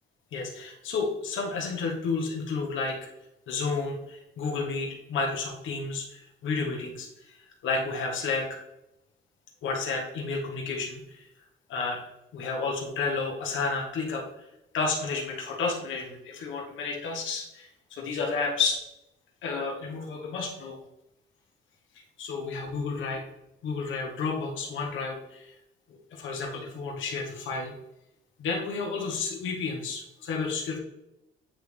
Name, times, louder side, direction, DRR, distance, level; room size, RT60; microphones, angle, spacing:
voice 1, 0.3-3.0 3.5-7.3 7.6-8.5 9.6-11.3 11.7-12.0 12.3-14.2 14.7-18.8 19.4-20.8 22.2-23.2 23.6-25.5 26.1-27.7 28.4-30.8, left 4 dB, 75° left, -1 dB, 1.3 m, -31 dB
8.8 x 3.1 x 3.4 m, 0.86 s
cardioid pair, 90°, 20 cm